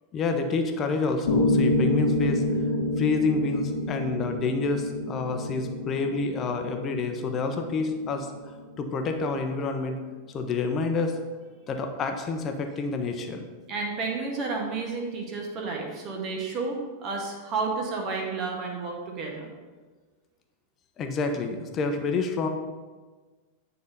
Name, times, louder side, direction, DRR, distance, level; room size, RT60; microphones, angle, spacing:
voice 1, 0.1-2.4 3.0-8.3 8.8-10.0 10.3-11.2 11.7-13.5 21.0-22.5, left 4 dB, 30° left, 5 dB, 0.9 m, -28 dB
Piano, 1.3-9.3, left 1 dB, 65° left, 1.2 m, -28 dB
voice 2, 13.7-19.5, right 4 dB, 35° right, 0 dB, 1.5 m, -31 dB
9.5 x 4.0 x 5.3 m, 1.3 s
figure-of-eight pair, 90°, 0 cm